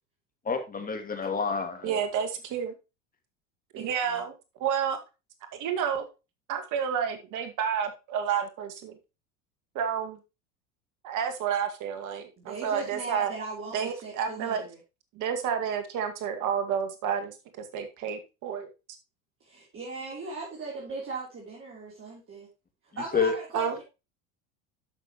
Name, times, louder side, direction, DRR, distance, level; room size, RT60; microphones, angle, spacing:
voice 1, 0.5-2.0 23.1-23.4, left 5 dB, 20° left, 6 dB, 2.3 m, -28 dB
voice 2, 1.8-2.7 3.7-4.3 4.6-5.0 5.5-6.1 6.5-9.0 9.7-10.2 11.0-13.3 13.7-14.6 15.1-18.7 23.5-23.8, right 7 dB, 50° right, 7 dB, 2.0 m, -30 dB
voice 3, 3.7-4.2 12.4-14.8 19.4-22.5 22.9-23.8, right 3 dB, 35° right, -3 dB, 3.2 m, -38 dB
11.0 x 6.2 x 3.0 m, 0.28 s
hypercardioid pair, 95°, 38 cm